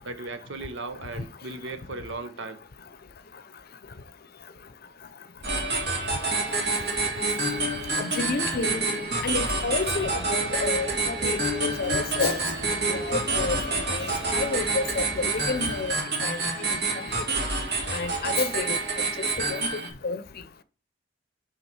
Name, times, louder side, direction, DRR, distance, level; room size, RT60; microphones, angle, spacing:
voice 1, 0.1-2.6, right 2 dB, 80° right, 0.9 m, -37 dB
sound 1, 5.4-19.9, right 3 dB, 60° right, 2.1 m, -28 dB
voice 2, 8.0-8.9 9.2-12.4 12.9-15.9 16.2-16.4 16.7-16.8 17.9-18.8 19.5-20.2, left 4 dB, 55° left, 0.6 m, -30 dB
sound 2, 9.3-16.0, equal, 15° right, 3.1 m, -42 dB
11.0 x 3.6 x 4.5 m
head